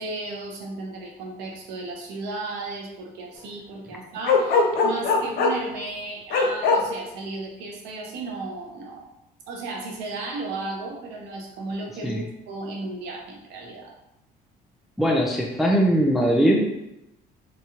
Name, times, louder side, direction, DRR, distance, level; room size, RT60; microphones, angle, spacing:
voice 1, 0.0-9.1 9.5-13.9, right 3 dB, 90° right, 0 dB, 0.7 m, -34 dB
Bark, 4.2-5.7 6.3-6.8, left 4 dB, 70° left, 0.5 m, -20 dB
voice 2, 15.0-16.9, equal, ahead, -1 dB, 0.4 m, -21 dB
2.9 x 2.3 x 2.8 m, 0.86 s
cardioid pair, 110°, 17 cm